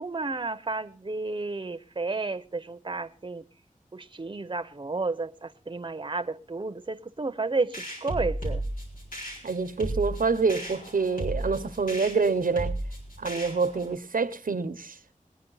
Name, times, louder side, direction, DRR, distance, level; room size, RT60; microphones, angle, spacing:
voice 1, 0.0-3.4 3.9-8.6, right 3 dB, 35° right, 0.8 m, -32 dB
sound 1, 7.7-13.9, right 1 dB, 85° left, 4.3 m, -34 dB
voice 2, 9.4-12.7 13.2-14.9, right 4 dB, 85° right, 0.8 m, -26 dB
21.5 x 9.6 x 3.9 m
wide cardioid pair, 65°, 14 cm